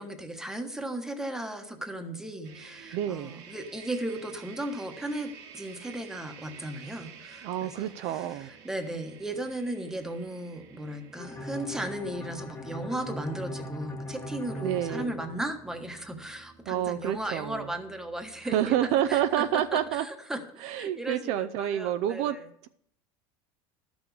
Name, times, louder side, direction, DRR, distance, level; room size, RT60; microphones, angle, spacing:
voice 1, 0.0-22.5, right 1 dB, 5° right, 5 dB, 1.2 m, -36 dB
sound 1, 2.4-20.0, right 7 dB, 75° right, 1.8 m, -52 dB
voice 2, 2.9-3.4 7.4-8.5 14.6-15.2 16.7-17.7 18.5-20.0 20.6-22.7, right 11 dB, 55° right, 11 dB, 0.5 m, -28 dB
Bowed string instrument, 11.2-16.0, left 1 dB, 20° left, 1.3 m, -39 dB
12.5 x 6.1 x 7.0 m, 0.70 s
cardioid pair, 150°, 13 cm